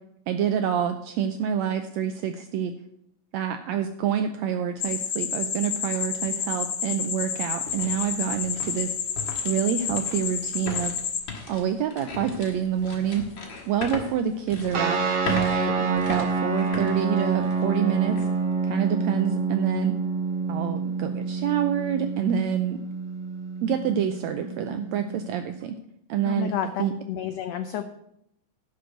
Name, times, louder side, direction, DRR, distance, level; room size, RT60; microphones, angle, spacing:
voice 1, 0.3-2.7 3.3-8.9 9.4-11.0 11.5-13.2 13.7-15.0 15.3-18.2 18.6-19.9 20.5-22.8 23.6-25.7 26.1-26.9, right 8 dB, 80° right, 8 dB, 1.6 m, -27 dB
sound 1, 4.8-11.2, left 7 dB, 60° left, 1.8 m, -30 dB
sound 2, 6.2-6.3 6.8-17.7 18.1-18.3 18.9-19.2, left 4 dB, 40° left, 2.1 m, -38 dB
sound 3, 14.7-25.6, right 4 dB, 45° right, 1.5 m, -28 dB
voice 2, 26.3-27.9, left 9 dB, 90° left, 9 dB, 1.4 m, -31 dB
11.5 x 5.4 x 7.7 m, 0.76 s
omnidirectional pair, 3.8 m